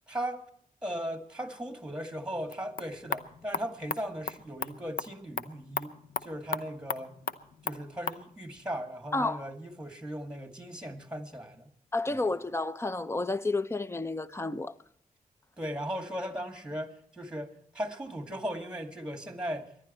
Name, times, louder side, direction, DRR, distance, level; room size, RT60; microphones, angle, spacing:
voice 1, 0.1-0.4 0.8-5.9 6.2-7.1 7.6-11.7 15.6-19.7, equal, 5° right, 2.1 m, -37 dB
sound 1, 2.4-8.2, left 6 dB, 80° left, 0.8 m, -38 dB
voice 2, 9.1-9.5 11.9-14.7, left 2 dB, 15° left, 0.7 m, -31 dB
25.0 x 11.0 x 4.3 m
wide cardioid pair, 95°, 15 cm